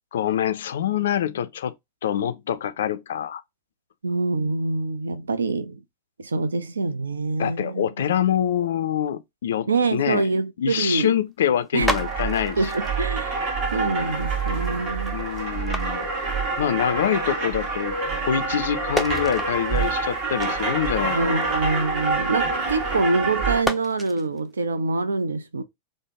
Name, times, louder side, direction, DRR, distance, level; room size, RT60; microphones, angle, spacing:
voice 1, 0.1-1.7 2.0-3.4 7.4-10.2 10.6-12.7 15.1-16.1 16.6-21.5, left 9 dB, 60° left, 0.3 m, -25 dB
voice 2, 4.0-5.8 6.2-7.9 9.7-11.1 11.7-11.9 12.6-13.4 13.7-15.2 21.1-25.6, right 3 dB, 75° right, 0.4 m, -25 dB
sound 1, 11.3-11.4 11.6-16.9 17.2-18.3 18.6-23.0 23.4-24.5, right 1 dB, 5° right, 0.5 m, -34 dB
Ball on table, 11.8-23.6, right 4 dB, 45° right, 1.2 m, -27 dB
3.3 x 2.0 x 3.5 m
figure-of-eight pair, 90°, 0 cm